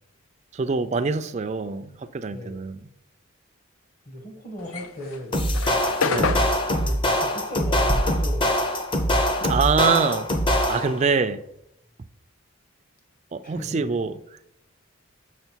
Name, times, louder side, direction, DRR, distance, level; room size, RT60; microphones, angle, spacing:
voice 1, 0.5-2.9 6.0-6.5 9.4-10.3 10.7-11.4 13.3-14.2, right 5 dB, 35° right, 10 dB, 0.3 m, -25 dB
voice 2, 2.3-2.6 4.1-5.5 6.8-8.6 10.8-11.0 13.4-13.9, left 1 dB, 40° left, 2 dB, 1.4 m, -37 dB
sound 1, 4.6-9.3 9.6-11.6, left 5 dB, 85° left, 0.6 m, -30 dB
sound 2, 5.3-11.0, equal, 25° left, 0.7 m, -23 dB
6.7 x 6.2 x 4.5 m, 0.79 s
head